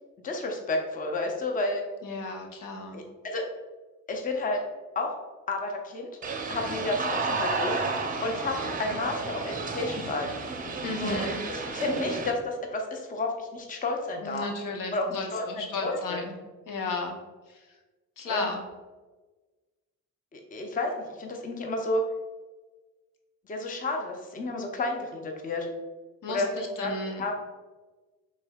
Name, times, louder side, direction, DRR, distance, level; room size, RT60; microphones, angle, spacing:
voice 1, 0.2-1.8 2.9-3.5 4.1-4.6 5.0-5.2 5.5-6.1 6.5-7.8 8.2-10.3 11.0-11.2 11.5-14.5 14.9-16.2 18.2-18.5 20.3-22.0 23.5-25.7 26.3-26.9 27.2-27.4, left 2 dB, 25° left, 2 dB, 0.6 m, -31 dB
voice 2, 2.0-3.0 10.8-11.4 14.2-16.3 16.7-17.1 18.2-18.6 26.2-27.2, left 3 dB, 80° left, 3 dB, 0.8 m, -34 dB
sound 1, 6.2-12.3, right 4 dB, 25° right, 0.6 m, -32 dB
5.4 x 3.5 x 2.3 m, 1.3 s
cardioid pair, 120°, 33 cm